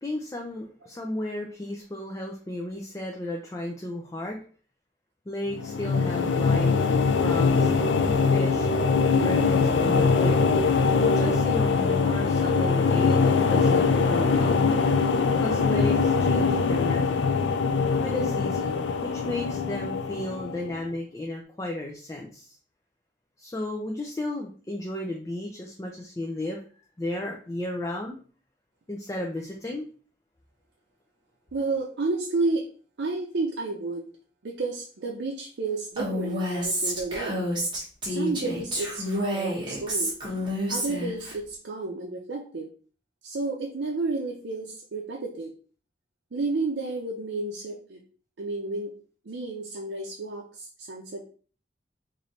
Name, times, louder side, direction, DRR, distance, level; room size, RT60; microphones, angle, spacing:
voice 1, 0.0-4.4 5.3-6.7 7.2-7.7 8.2-8.7 9.2-10.5 11.1-14.8 15.4-17.5 18.0-22.6 23.4-26.6 27.0-28.2 28.9-29.9, left 1 dB, 15° left, 1 dB, 0.4 m, -34 dB
sound 1, 5.5-20.8, left 4 dB, 85° left, 0.4 m, -23 dB
voice 2, 31.5-32.6 33.0-34.1 34.4-37.5 38.0-40.1 40.7-42.7 43.2-45.5 46.3-48.0 48.4-48.9 49.3-51.2, right 3 dB, 80° right, -2 dB, 0.6 m, -31 dB
Female speech woman speaking, 36.0-41.3, equal, 25° right, 1.2 m, -29 dB
3.1 x 2.6 x 4.1 m, 0.41 s
head